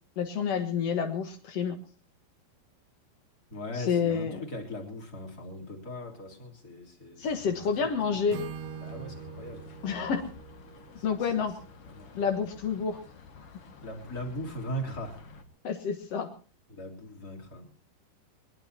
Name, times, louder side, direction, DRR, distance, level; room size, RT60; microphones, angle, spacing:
voice 1, 0.2-1.8 3.7-4.4 7.2-8.4 9.8-10.2 11.0-11.5 12.1-13.0 15.6-16.3, left 6 dB, 75° left, 6 dB, 1.4 m, -29 dB
voice 2, 3.5-8.2 8.8-9.7 11.0-11.5 11.9-12.4 13.8-15.2 16.7-17.8, equal, 25° left, 2 dB, 3.3 m, -40 dB
sound 1, 7.2-15.4, left 3 dB, 45° left, 2.0 m, -50 dB
Acoustic guitar / Strum, 8.3-12.3, right 9 dB, 80° right, 3.3 m, -44 dB
22.0 x 21.5 x 2.9 m, 0.37 s
omnidirectional pair, 5.2 m